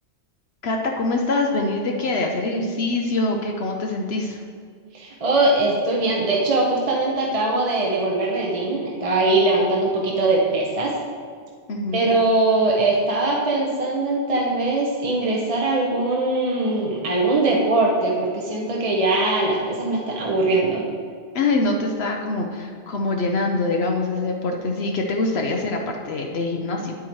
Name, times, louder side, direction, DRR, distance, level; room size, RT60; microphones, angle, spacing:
voice 1, 0.6-4.4 11.7-12.1 21.3-27.0, left 2 dB, 65° left, 1 dB, 0.9 m, -24 dB
voice 2, 4.9-10.9 11.9-20.8, right 2 dB, 35° right, -3 dB, 1.0 m, -21 dB
10.0 x 8.4 x 3.1 m, 2.1 s
omnidirectional pair, 1.2 m